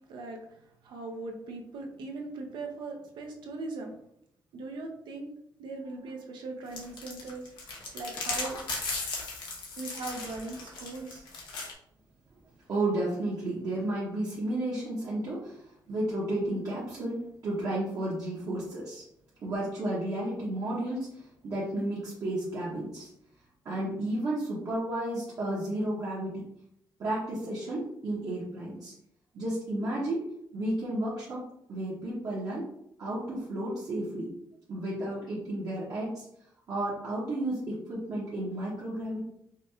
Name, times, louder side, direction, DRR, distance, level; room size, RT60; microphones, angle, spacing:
voice 1, 0.1-3.9 4.5-5.3 5.6-7.5 7.9-8.6 9.8-11.3, right 3 dB, 80° right, 2 dB, 0.7 m, -39 dB
sound 1, 6.7-11.7, left 3 dB, 85° left, 1.0 m, -36 dB
voice 2, 12.7-19.0 19.4-23.1 23.6-26.5 27.0-28.9 29.3-30.2 30.5-31.4 31.7-32.7 33.0-34.3 34.7-36.3 36.7-39.2, right 1 dB, 50° right, -7 dB, 0.9 m, -32 dB
5.1 x 2.2 x 2.8 m, 0.75 s
wide cardioid pair, 170°, 8 cm